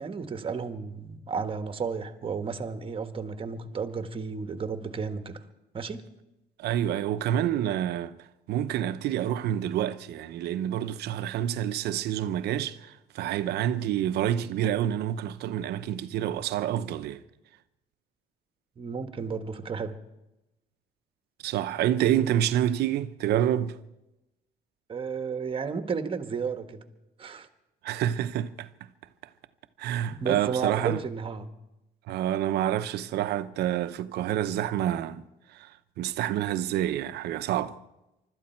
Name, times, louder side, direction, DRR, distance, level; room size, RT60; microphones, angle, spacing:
voice 1, 0.0-5.4 5.7-6.1 18.8-20.0 24.9-26.8 27.2-27.5 30.1-31.5, right 5 dB, 30° right, 1.5 m, -33 dB
voice 2, 6.6-8.2 8.5-17.2 21.4-23.8 27.8-28.7 29.8-31.0 32.1-35.2 35.5-37.8, right 11 dB, 75° right, 0.8 m, -28 dB
24.5 x 13.0 x 4.5 m
cardioid pair, 110°, 17 cm